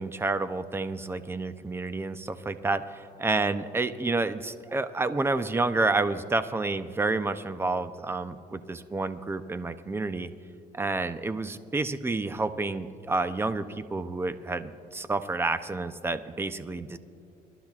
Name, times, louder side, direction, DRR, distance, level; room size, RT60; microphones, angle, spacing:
voice 1, 0.0-10.3 10.7-13.6 13.9-17.0, right 3 dB, 15° right, 11 dB, 0.6 m, -29 dB
24.5 x 12.0 x 2.4 m, 2.6 s
cardioid pair, 110°, 17 cm